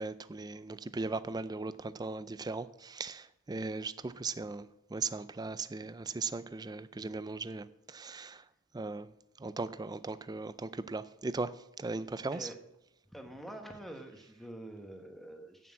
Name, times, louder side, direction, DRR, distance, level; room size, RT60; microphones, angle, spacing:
voice 1, 0.0-8.4 8.7-9.1 9.4-11.5 11.8-12.5, right 3 dB, 20° right, 0.4 m, -38 dB
voice 2, 13.1-15.7, right 1 dB, ahead, 1.2 m, -46 dB
8.6 x 7.3 x 8.5 m
head